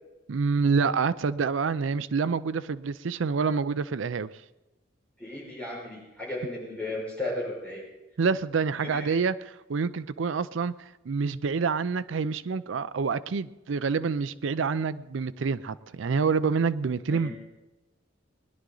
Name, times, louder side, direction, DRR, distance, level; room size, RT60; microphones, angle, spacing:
voice 1, 0.3-4.3 8.2-10.7 11.1-17.3, right 5 dB, 80° right, 16 dB, 0.5 m, -27 dB
voice 2, 5.2-7.8 8.9-9.1 17.1-17.3, left 1 dB, 5° left, -5 dB, 5.3 m, -35 dB
21.0 x 11.0 x 3.9 m, 1.0 s
head